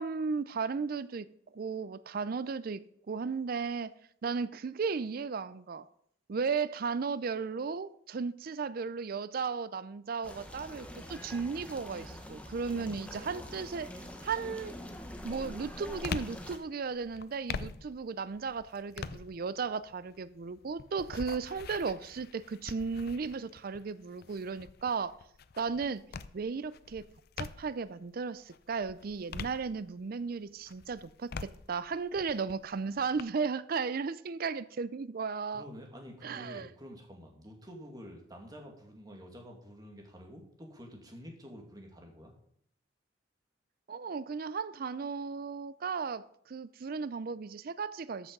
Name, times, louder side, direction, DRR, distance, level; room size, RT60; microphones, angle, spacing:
voice 1, 0.0-3.9 4.2-5.9 6.3-13.9 14.2-14.8 15.2-25.1 25.6-26.0 26.3-27.1 27.4-35.6 36.2-36.7 43.9-48.3, right 5 dB, 50° right, 16 dB, 0.4 m, -35 dB
sound 1, 10.2-16.6, equal, 5° left, 1.2 m, -45 dB
voice 2, 12.7-13.4 35.5-42.3, equal, 20° right, 1 dB, 2.1 m, -49 dB
sound 2, 13.5-13.9 14.4-27.9 28.4-30.2 30.6-33.2, left 5 dB, 55° left, 0.5 m, -45 dB
13.5 x 6.1 x 5.4 m, 0.67 s
head